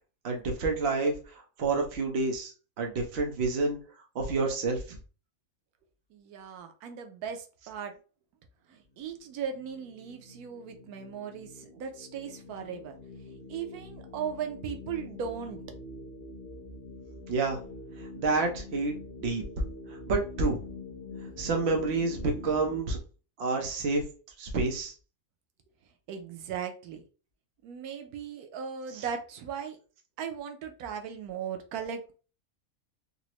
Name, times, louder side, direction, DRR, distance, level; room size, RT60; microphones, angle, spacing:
voice 1, 0.2-3.8 4.1-5.0 17.3-17.6 18.2-18.9 19.2-19.4 20.1-20.6 21.4-23.0 23.4-24.0 24.4-24.9 28.9-29.0, right 3 dB, 55° right, 2 dB, 0.9 m, -29 dB
voice 2, 6.1-7.9 8.7-12.9 13.5-15.6 26.1-27.0 27.6-29.8 30.2-32.1, right 7 dB, 85° right, 5 dB, 1.1 m, -37 dB
sound 1, 9.0-22.8, left 3 dB, 40° left, 1.0 m, -45 dB
3.9 x 2.0 x 2.9 m, 0.36 s
omnidirectional pair, 1.6 m